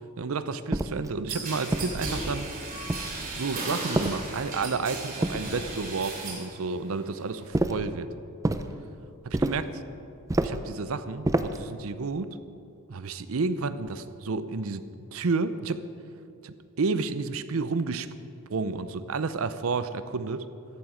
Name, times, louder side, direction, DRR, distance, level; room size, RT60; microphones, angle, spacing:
voice 1, 0.2-2.5 3.4-8.1 9.2-9.8 10.4-12.4 12.9-14.9 15.1-15.8 16.4-18.1 18.5-20.5, right 4 dB, 70° right, 13 dB, 0.6 m, -31 dB
sound 1, 0.7-1.1 1.7-2.4 2.9-3.4 3.9-4.6 5.2-5.9 7.5-7.9 8.4-8.7 9.3-9.7 10.3-10.7 11.2-11.7, right 1 dB, 15° right, 0.4 m, -29 dB
sound 2, 1.3-6.5 6.8-7.5, right 2 dB, 40° right, 3.1 m, -35 dB
14.0 x 11.0 x 5.0 m, 2.6 s
head